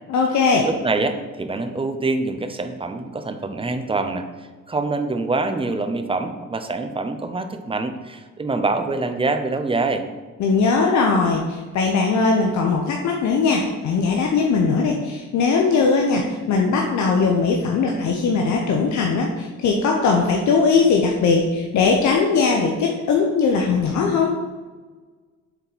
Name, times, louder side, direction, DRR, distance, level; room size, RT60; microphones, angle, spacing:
voice 1, 0.1-0.7 10.4-24.4, left 4 dB, 70° left, 1 dB, 0.8 m, -19 dB
voice 2, 0.6-4.3 4.7-10.0, right 3 dB, 20° right, 8 dB, 0.6 m, -25 dB
6.9 x 4.4 x 4.1 m, 1.4 s
cardioid pair, 90°, 30 cm